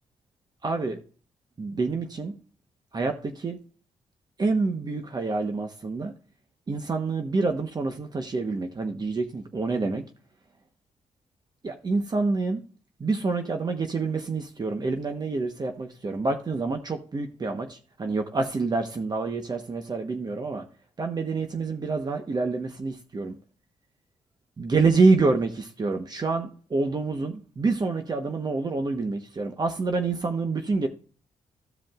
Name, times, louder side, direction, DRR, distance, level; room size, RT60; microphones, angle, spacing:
voice 1, 0.6-1.0 1.6-2.3 2.9-3.6 4.4-6.1 6.7-10.0 11.6-12.6 13.0-20.6 21.0-23.4 24.6-30.9, right 3 dB, 35° right, 1.1 m, -27 dB
15.0 x 5.1 x 2.5 m
cardioid pair, 90°, 12 cm